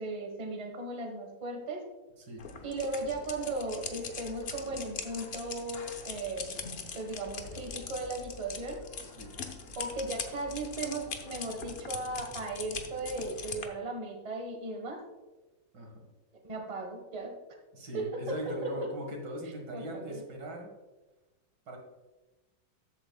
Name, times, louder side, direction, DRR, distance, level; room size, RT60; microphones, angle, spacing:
voice 1, 0.0-1.8 2.6-6.6 6.9-8.8 9.8-15.0 16.4-17.3 17.9-18.2 18.5-18.7 19.7-20.2, right 2 dB, 25° right, 2 dB, 1.2 m, -37 dB
sound 1, 2.4-13.7, left 5 dB, 45° left, 0.8 m, -42 dB
voice 2, 15.7-16.1 17.7-20.7 21.7-21.8, equal, 65° right, 1 dB, 2.3 m, -40 dB
13.5 x 8.2 x 2.3 m, 1.2 s
omnidirectional pair, 2.0 m